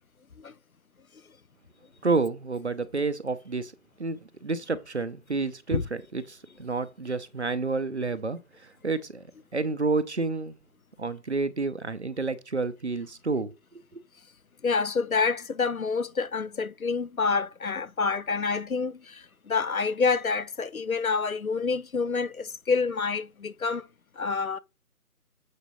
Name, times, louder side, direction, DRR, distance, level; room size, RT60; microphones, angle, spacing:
voice 1, 2.0-3.7 4.0-9.2 9.5-10.6 11.0-13.5 13.9-14.0, right 3 dB, 50° right, 0.7 m, -29 dB
voice 2, 14.6-23.9 24.2-24.6, left 4 dB, 65° left, 0.8 m, -27 dB
8.3 x 4.7 x 4.0 m
figure-of-eight pair, 160°, 46 cm